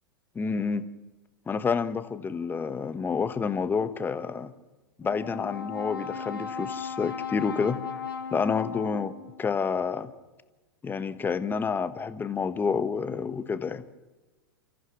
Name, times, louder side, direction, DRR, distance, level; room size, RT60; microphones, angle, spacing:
voice 1, 0.3-0.9 1.5-4.5 5.0-7.8 8.3-9.1 9.4-10.1 10.8-13.8, left 5 dB, 15° left, 12 dB, 1.2 m, -29 dB
Brass instrument, 5.0-9.4, left 6 dB, 90° left, 2.2 m, -36 dB
29.5 x 14.5 x 6.2 m, 1.2 s
hypercardioid pair, 105°, 12 cm